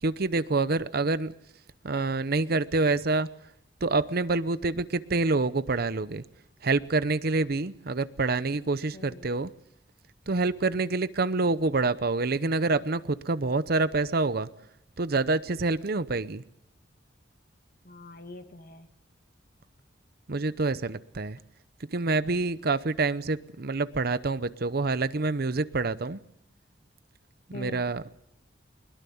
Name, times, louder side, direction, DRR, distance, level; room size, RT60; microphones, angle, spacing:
voice 1, 0.0-1.3 1.8-3.3 3.8-6.2 6.6-9.5 10.3-14.5 15.0-16.4 20.3-21.4 21.9-26.2 27.5-28.1, right 3 dB, 55° right, 15 dB, 0.8 m, -27 dB
voice 2, 8.9-9.3 10.8-11.1 17.8-18.9 21.4-21.5 27.5-27.9, left 2 dB, 55° left, 7 dB, 1.9 m, -44 dB
21.5 x 21.5 x 7.1 m, 0.76 s
head